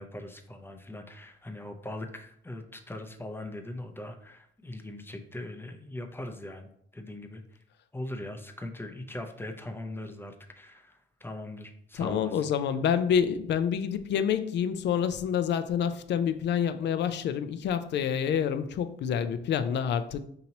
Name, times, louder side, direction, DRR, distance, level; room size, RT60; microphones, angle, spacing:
voice 1, 0.0-7.6 7.9-12.5, left 1 dB, 10° left, 6 dB, 0.6 m, -40 dB
voice 2, 12.0-20.3, left 8 dB, 60° left, 11 dB, 0.4 m, -28 dB
5.2 x 2.8 x 2.8 m, 0.70 s
cardioid pair, 90°, 20 cm